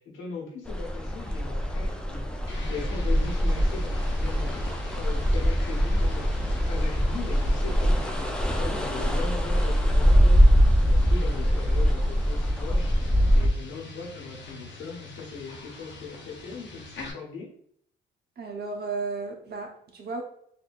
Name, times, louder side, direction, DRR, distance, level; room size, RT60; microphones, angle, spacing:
voice 1, 0.0-2.3 2.7-13.0 13.3-17.5, left 4 dB, 80° left, -2 dB, 1.2 m, -39 dB
sound 1, 0.7-13.5, equal, 5° left, 0.6 m, -23 dB
sound 2, 2.5-17.1, left 3 dB, 65° left, 1.0 m, -44 dB
voice 2, 18.4-20.2, right 4 dB, 55° right, 1 dB, 1.0 m, -34 dB
4.2 x 2.7 x 2.6 m, 0.66 s
cardioid pair, 90°, 20 cm